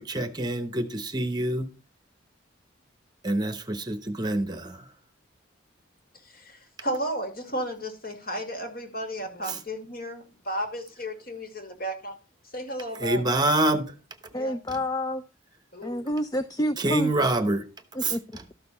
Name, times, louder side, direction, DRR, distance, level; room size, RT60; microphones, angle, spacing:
voice 1, 0.0-1.7 3.2-4.9 9.4-9.6 12.9-13.9 14.7-14.8 16.8-17.7 18.0-18.1, right 2 dB, 20° right, 0.9 m, -26 dB
voice 2, 6.2-12.2 12.5-13.2 14.3-14.6 15.7-16.1, equal, 50° left, 2.3 m, -34 dB
voice 3, 14.3-15.2 15.8-17.3 18.0-18.2, equal, 20° left, 0.4 m, -29 dB
13.0 x 6.6 x 4.2 m
head